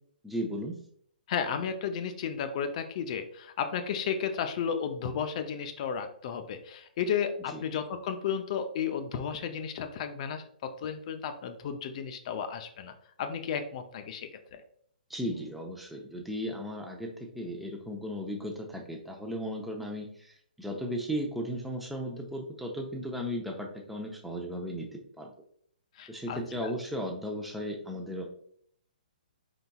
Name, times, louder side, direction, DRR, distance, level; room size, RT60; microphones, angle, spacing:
voice 1, 0.2-0.7 7.5-7.6 15.1-25.3 26.1-28.3, equal, ahead, 1 dB, 0.7 m, -36 dB
voice 2, 1.3-12.9 13.2-14.6 26.0-26.7, left 7 dB, 45° left, 7 dB, 0.5 m, -33 dB
4.4 x 4.0 x 2.3 m, 0.63 s
hypercardioid pair, 135°, 5 cm